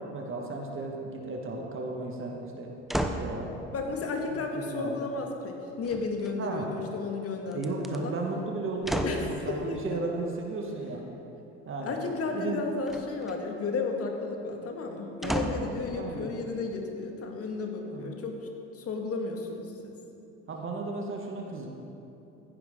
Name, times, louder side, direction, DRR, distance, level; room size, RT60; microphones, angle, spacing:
voice 1, 0.0-2.7 3.2-3.5 4.3-5.0 6.4-6.6 7.5-11.0 11.6-12.0 12.3-12.6 15.2-15.5 15.9-16.3 17.9-18.1 20.5-21.7, right 3 dB, 35° right, 1 dB, 1.6 m, -34 dB
sound 1, 2.9-3.3 5.8-6.6 7.5-8.0 8.8-9.3 12.9-13.4 15.2-15.8 16.4-16.5, right 1 dB, ahead, 0.8 m, -32 dB
voice 2, 3.7-8.1 9.0-9.8 11.8-18.3 18.7-19.9, left 3 dB, 40° left, 2 dB, 2.0 m, -33 dB
15.5 x 10.0 x 3.8 m, 2.9 s
hypercardioid pair, 70°, 35 cm